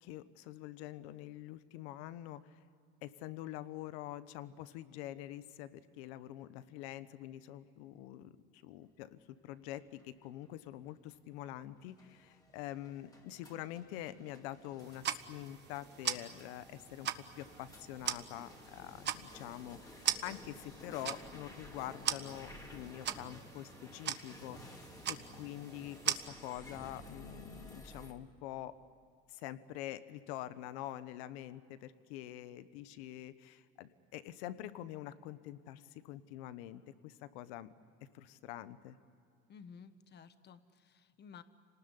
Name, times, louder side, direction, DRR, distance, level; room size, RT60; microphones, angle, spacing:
voice 1, 0.0-2.6 3.0-17.1 17.4-28.7 29.3-37.7 38.1-39.0, left 13 dB, 85° left, 14 dB, 1.2 m, -46 dB
sound 1, 9.5-28.1, left 1 dB, 10° left, 2.9 m, -54 dB
sound 2, 14.8-26.2, right 10 dB, 35° right, 1.1 m, -41 dB
voice 2, 39.5-41.4, left 6 dB, 35° left, 11 dB, 1.4 m, -54 dB
27.5 x 19.5 x 9.9 m, 2.3 s
cardioid pair, 135°, 31 cm